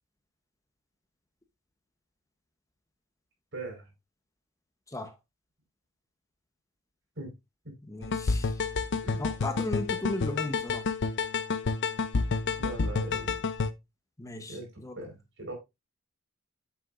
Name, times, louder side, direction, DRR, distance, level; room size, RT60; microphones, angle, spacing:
voice 1, 3.5-3.8 7.2-7.3 7.6-7.7 9.0-9.2 12.6-13.4 14.5-15.5, right 2 dB, 65° right, 4.3 m, -40 dB
voice 2, 7.8-8.6 9.2-10.9 14.2-15.1, left 2 dB, 15° left, 0.9 m, -36 dB
sound 1, 8.0-13.7, left 4 dB, 55° left, 0.6 m, -29 dB
8.5 x 7.5 x 2.5 m
head